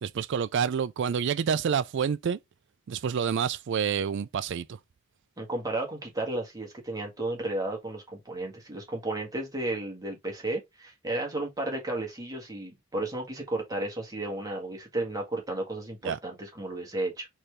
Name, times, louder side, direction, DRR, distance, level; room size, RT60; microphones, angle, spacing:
voice 1, 0.0-2.4 2.9-4.8 16.0-16.2, right 7 dB, 55° right, 0.3 m, -28 dB
voice 2, 5.4-17.3, right 2 dB, 15° right, 1.6 m, -33 dB
4.2 x 3.3 x 3.1 m
head